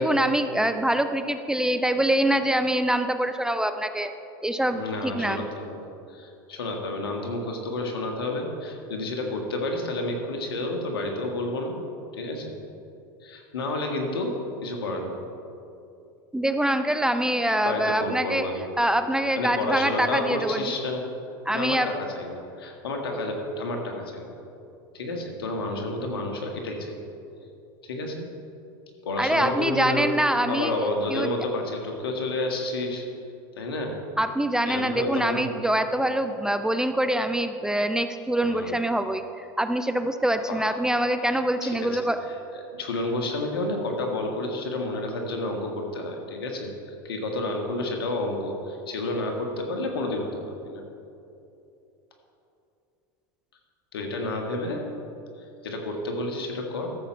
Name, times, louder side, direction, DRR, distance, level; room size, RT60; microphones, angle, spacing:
voice 1, 0.0-4.1 4.4-5.4 16.3-18.4 18.8-20.6 21.5-21.9 29.2-30.7 31.1-31.3 34.2-42.2, right 1 dB, 5° right, 9 dB, 0.5 m, -24 dB
voice 2, 4.8-11.8 12.1-12.5 13.2-14.3 14.6-15.2 17.6-18.7 19.4-21.1 21.5-24.4 24.9-27.0 27.8-28.3 29.0-30.1 30.5-33.0 33.6-33.9 34.6-35.5 38.4-38.8 40.5-40.8 41.6-41.9 42.7-50.8 53.9-54.8 55.6-56.9, left 2 dB, 90° left, 2 dB, 1.7 m, -30 dB
13.5 x 7.4 x 4.5 m, 2.7 s
hypercardioid pair, 100°, 12 cm